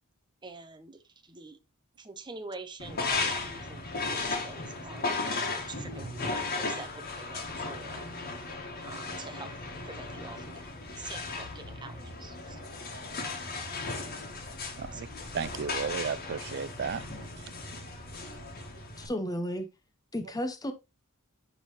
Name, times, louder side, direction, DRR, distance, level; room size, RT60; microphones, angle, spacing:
voice 1, 0.4-1.6 2.0-8.0 8.8-9.5 9.8-10.6 11.0-12.6 14.9-15.1, right 3 dB, 20° right, 0.9 m, -46 dB
sound 1, 2.8-19.1, left 3 dB, 45° left, 1.9 m, -36 dB
voice 2, 14.8-15.1 15.3-17.0 17.5-17.6, right 6 dB, 50° right, 0.4 m, -34 dB
voice 3, 19.0-19.7 20.1-20.7, equal, 15° left, 0.9 m, -33 dB
11.0 x 3.8 x 3.1 m
head